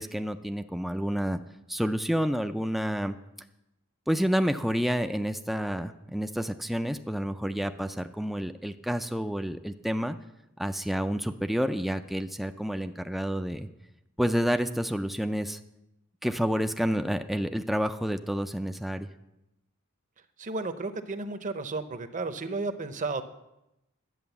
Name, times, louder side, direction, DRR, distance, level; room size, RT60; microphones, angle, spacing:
voice 1, 0.0-1.4 1.7-3.1 4.1-10.2 10.6-13.7 14.2-15.6 16.2-19.1, equal, ahead, 8 dB, 0.4 m, -29 dB
voice 2, 20.4-23.2, right 3 dB, 35° right, 10 dB, 0.8 m, -33 dB
11.0 x 8.5 x 7.0 m, 0.90 s
head